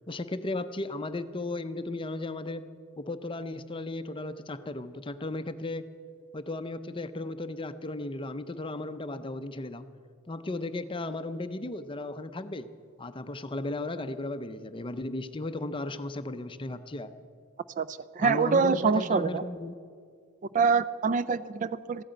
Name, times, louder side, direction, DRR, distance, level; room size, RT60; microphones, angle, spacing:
voice 1, 0.1-2.7 3.0-5.9 6.3-9.9 10.3-12.7 13.0-17.2 18.2-19.7, left 2 dB, 25° left, 11 dB, 0.6 m, -35 dB
voice 2, 17.8-19.4 20.5-22.0, right 5 dB, 35° right, 16 dB, 0.3 m, -25 dB
14.5 x 9.0 x 8.9 m, 2.2 s
head